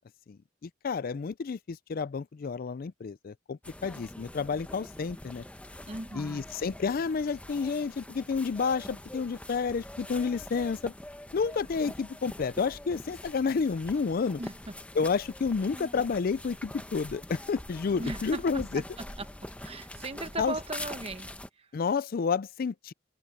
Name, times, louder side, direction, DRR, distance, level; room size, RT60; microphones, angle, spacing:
voice 1, 0.6-5.4 6.1-10.9 11.3-14.4 15.0-18.8 20.4-20.5 21.7-22.9, left 5 dB, 50° left, 0.4 m, -30 dB
sound 1, 3.6-21.5, left 1 dB, 5° left, 0.9 m, -44 dB
voice 2, 5.9-6.5 14.4-14.7 18.0-19.3 19.6-21.3 21.6-21.7, right 2 dB, 30° right, 1.2 m, -38 dB
head